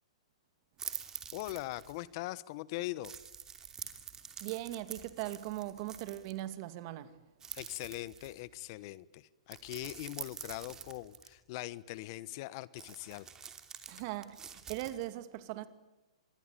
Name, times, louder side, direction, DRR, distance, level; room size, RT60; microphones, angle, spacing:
sound 1, 0.8-2.0 3.0-6.4 7.4-8.5 9.5-11.3 12.8-15.1, right 7 dB, 15° right, 2.8 m, -46 dB
voice 1, 1.3-3.1 7.5-13.3, left 17 dB, 45° left, 1.1 m, -41 dB
voice 2, 4.4-7.1 13.9-15.7, right 15 dB, 40° right, 2.4 m, -40 dB
26.5 x 22.0 x 9.1 m
hypercardioid pair, 135°, 3 cm